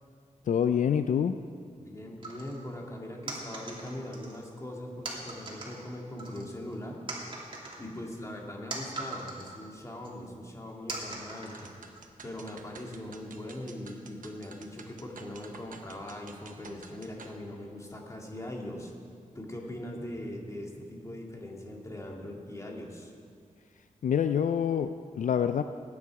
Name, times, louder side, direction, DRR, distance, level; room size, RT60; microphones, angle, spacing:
voice 1, 0.5-1.4 24.0-25.6, left 8 dB, 70° left, 9 dB, 0.4 m, -26 dB
voice 2, 1.8-7.0 7.8-11.7 12.2-18.9 19.3-23.1, left 1 dB, 20° left, 0 dB, 2.2 m, -41 dB
sound 1, 2.2-2.6 3.3-4.4 5.0-5.8 6.2-6.7 7.1-9.6 10.0-10.1 10.9-12.0, right 2 dB, 40° right, 2.7 m, -40 dB
sound 2, 11.5-17.4, right 5 dB, 90° right, 1.0 m, -51 dB
20.0 x 9.6 x 4.8 m, 2.2 s
wide cardioid pair, 90°, 13 cm